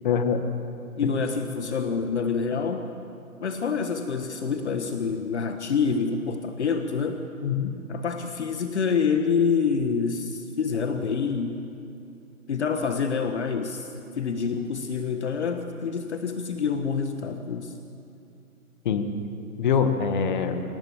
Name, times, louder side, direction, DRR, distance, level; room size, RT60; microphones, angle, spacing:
voice 1, 0.0-0.4 1.0-1.1 7.4-7.7 18.8-19.1 19.6-20.6, left 6 dB, 35° left, 8 dB, 1.7 m, -24 dB
voice 2, 1.0-2.9 3.4-7.2 7.9-11.6 12.5-17.7, left 5 dB, 50° left, 7 dB, 1.5 m, -27 dB
26.5 x 18.5 x 7.4 m, 2.7 s
figure-of-eight pair, 145°, 44 cm